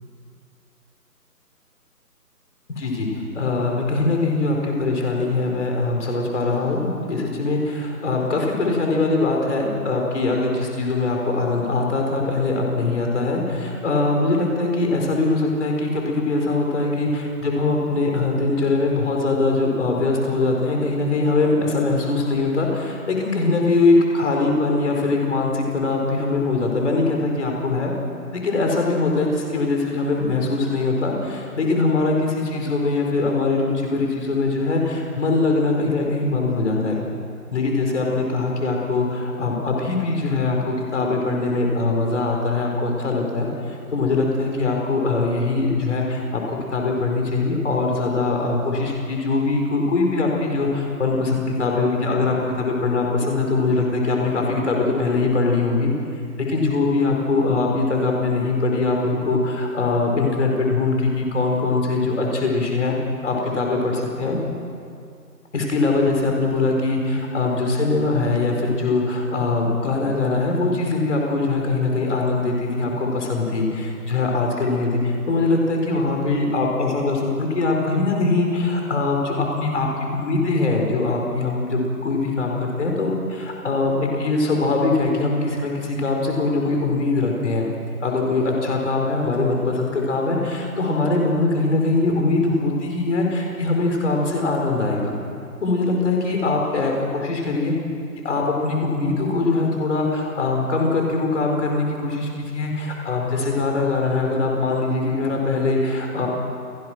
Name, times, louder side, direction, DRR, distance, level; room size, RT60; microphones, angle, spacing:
voice 1, 2.7-27.9 28.3-37.0 37.5-55.9 56.4-63.0 63.2-64.4 65.5-79.9 80.1-87.7 88.0-95.1 95.6-97.8 98.2-106.3, left 3 dB, 45° left, 1 dB, 4.9 m, -22 dB
29.0 x 17.5 x 6.3 m, 2.4 s
figure-of-eight pair, 165°, 48 cm